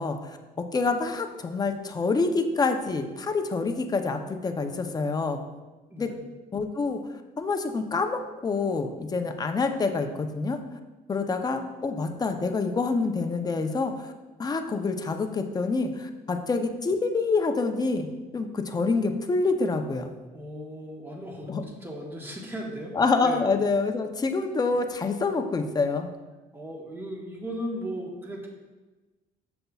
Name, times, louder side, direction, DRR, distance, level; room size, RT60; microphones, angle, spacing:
voice 1, 0.0-5.4 6.0-6.1 6.5-7.0 7.4-10.6 11.1-14.1 14.4-18.1 18.3-20.1 21.5-21.6 22.9-26.1, left 4 dB, 25° left, 5 dB, 0.6 m, -27 dB
voice 2, 20.3-23.4 26.5-28.5, equal, 10° right, -1 dB, 1.4 m, -37 dB
7.7 x 6.8 x 2.4 m, 1.2 s
cardioid pair, 110°, 17 cm